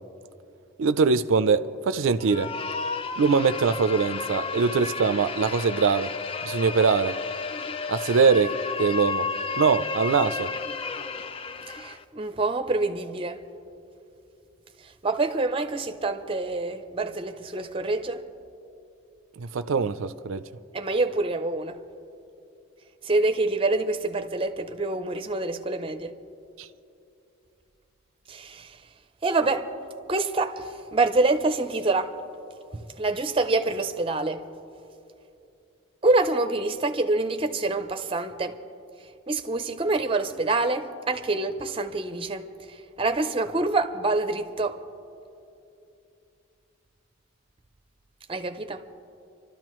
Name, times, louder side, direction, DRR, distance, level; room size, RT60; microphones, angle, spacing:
voice 1, 0.8-2.5 3.2-6.1 6.4-7.1 7.9-8.5 8.8-9.3 9.6-10.5 19.4-20.4 26.6-26.7, right 5 dB, 80° right, 0.4 m, -22 dB
sound 1, 2.2-12.0, left 5 dB, 30° left, 0.3 m, -32 dB
voice 2, 11.7-13.4 14.8-18.3 20.7-21.8 23.0-26.2 28.3-28.8 29.2-29.7 30.1-32.2 32.7-34.5 36.0-38.6 39.3-44.8 48.3-48.8, right 2 dB, 25° right, 0.6 m, -26 dB
29.5 x 12.5 x 3.1 m
head